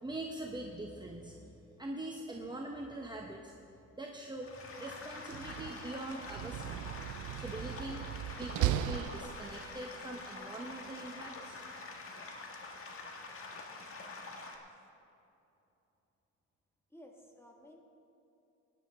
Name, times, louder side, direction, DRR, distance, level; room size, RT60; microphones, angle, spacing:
voice 1, 0.0-1.5 1.8-3.5 3.9-6.8 7.4-8.0 8.4-11.6, right 1 dB, 15° right, 0 dB, 1.0 m, -43 dB
sound 1, 4.4-14.6, left 3 dB, 45° left, 1.7 m, -46 dB
Slam, 5.2-9.9, right 12 dB, 80° right, 0.4 m, -37 dB
voice 2, 16.9-17.8, equal, 10° left, 1 dB, 1.8 m, -56 dB
17.5 x 10.5 x 3.7 m, 2.9 s
cardioid pair, 90°, 30 cm